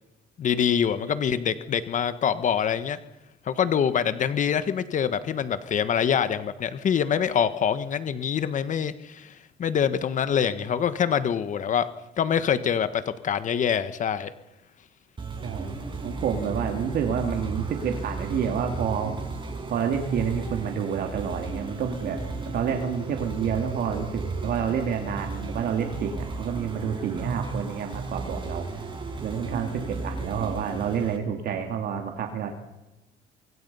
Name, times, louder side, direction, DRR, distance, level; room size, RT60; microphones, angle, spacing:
voice 1, 0.4-3.0 3.4-11.9 12.2-14.3, left 8 dB, 50° left, 12 dB, 1.4 m, -25 dB
sound 1, 15.2-31.2, right 3 dB, 30° right, 5.8 m, -34 dB
voice 2, 15.4-19.2 19.7-22.2 22.4-28.7 29.2-32.5, right 7 dB, 65° right, 4 dB, 2.7 m, -29 dB
24.5 x 24.5 x 5.6 m, 1.0 s
cardioid pair, 110°, 17 cm